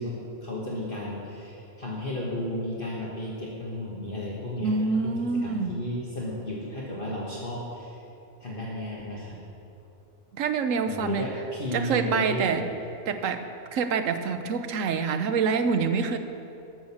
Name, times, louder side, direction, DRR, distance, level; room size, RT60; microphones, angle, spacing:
voice 1, 0.0-8.0 8.4-9.4 10.9-12.6, left 1 dB, 45° left, -5 dB, 1.5 m, -33 dB
voice 2, 4.6-5.7 10.3-11.3 11.7-12.7 13.1-13.5 13.7-16.2, right 5 dB, 75° right, 8 dB, 1.1 m, -26 dB
12.0 x 6.3 x 7.2 m, 2.8 s
omnidirectional pair, 1.4 m